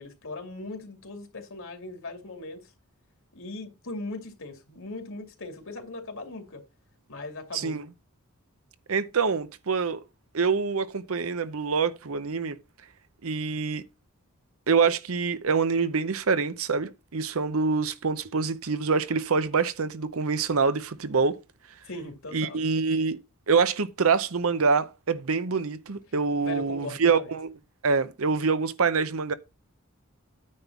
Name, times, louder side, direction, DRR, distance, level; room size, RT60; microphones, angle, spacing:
voice 1, 0.0-2.6 3.3-6.6 7.1-7.8 21.9-22.6 26.4-27.3, left 2 dB, 60° left, 2.4 m, -39 dB
voice 2, 7.5-7.9 8.9-10.0 10.3-12.6 13.2-13.8 14.7-21.4 22.3-23.2 23.5-27.5 27.8-29.3, right 5 dB, 65° right, 0.7 m, -25 dB
9.6 x 3.6 x 7.1 m
head